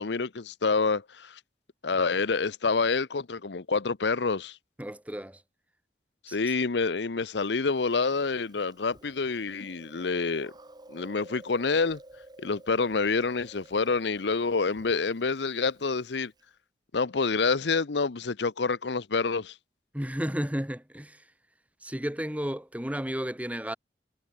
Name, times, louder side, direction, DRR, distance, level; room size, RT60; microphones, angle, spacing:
voice 1, 0.0-1.4 1.8-4.6 6.3-10.5 10.9-12.0 12.4-16.3 16.9-19.5, left 4 dB, 70° left, 0.8 m, -27 dB
voice 2, 4.8-5.4 6.3-6.4 19.9-21.2 21.8-23.8, equal, 10° right, 1.9 m, -33 dB
Chewing mastication, 7.5-16.4, right 1 dB, 25° right, 3.7 m, -53 dB
head